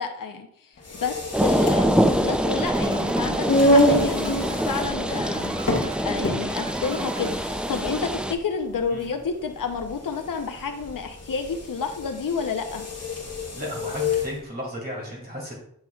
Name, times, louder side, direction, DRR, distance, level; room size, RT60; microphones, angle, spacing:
voice 1, 0.0-12.8, left 5 dB, 75° left, 5 dB, 0.7 m, -30 dB
sound 1, 0.8-14.4, left 1 dB, 45° left, 1.2 m, -27 dB
sound 2, 1.3-8.3, right 1 dB, 5° right, 0.3 m, -25 dB
sound 3, 2.0-8.3, right 5 dB, 90° right, 0.6 m, -40 dB
voice 2, 13.5-15.5, equal, 30° right, -4 dB, 2.4 m, -34 dB
7.7 x 5.6 x 2.3 m, 0.68 s
wide cardioid pair, 70°, 33 cm